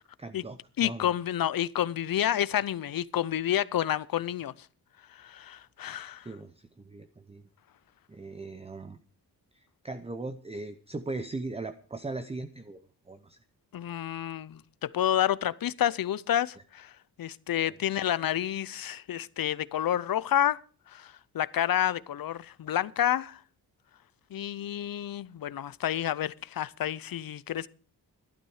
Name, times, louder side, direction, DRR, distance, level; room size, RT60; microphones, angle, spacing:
voice 1, 0.2-1.1 6.2-7.5 8.1-9.0 9.5-12.8 13.1-13.4, right 3 dB, 15° right, 0.7 m, -39 dB
voice 2, 0.8-4.5 5.1-6.3 13.7-16.9 17.2-20.6 20.9-23.4 24.3-27.7, left 11 dB, 60° left, 0.7 m, -29 dB
14.5 x 12.0 x 4.8 m
wide cardioid pair, 160°, 40 cm